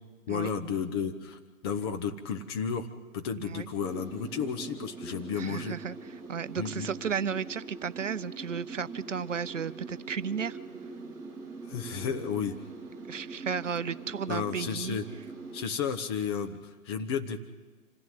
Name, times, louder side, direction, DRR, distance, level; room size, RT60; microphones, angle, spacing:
voice 1, 0.3-2.9 3.1-5.7 6.6-6.9 11.6-12.6 14.3-15.1 15.5-17.4, left 7 dB, 15° left, 5 dB, 0.8 m, -33 dB
sound 1, 3.8-15.6, right 3 dB, 5° right, 2.8 m, -43 dB
voice 2, 5.3-5.9 6.3-10.6 13.1-15.0, right 7 dB, 55° right, 15 dB, 0.7 m, -34 dB
26.0 x 15.5 x 9.2 m, 1.3 s
figure-of-eight pair, 130°, 44 cm